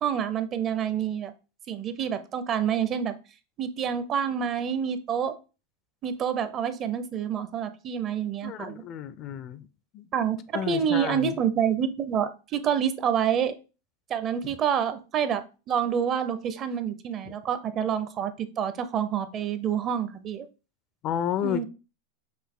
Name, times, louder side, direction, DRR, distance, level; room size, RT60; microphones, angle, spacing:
voice 1, 0.0-1.3 1.7-3.1 3.6-5.3 6.0-8.8 10.1-13.5 14.1-20.5 21.4-21.6, right 8 dB, 30° right, 0.5 m, -27 dB
voice 2, 8.4-9.7 9.9-10.0 10.5-11.3 21.0-21.6, left 10 dB, 35° left, 0.4 m, -31 dB
5.7 x 2.5 x 3.7 m
supercardioid pair, 135°, 0 cm